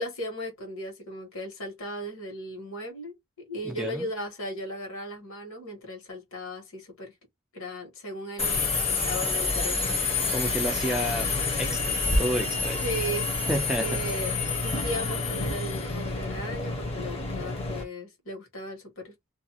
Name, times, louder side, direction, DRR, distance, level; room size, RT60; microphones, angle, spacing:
voice 1, 0.0-7.1 7.5-8.7 9.1-10.5 12.8-13.4 13.8-19.1, equal, 65° left, 1.3 m, -36 dB
voice 2, 3.6-4.1 10.3-12.8 13.5-14.0, equal, 5° right, 0.3 m, -31 dB
Subway metro underground, 8.4-17.8, left 3 dB, 25° left, 0.7 m, -28 dB
2.6 x 2.2 x 2.8 m
head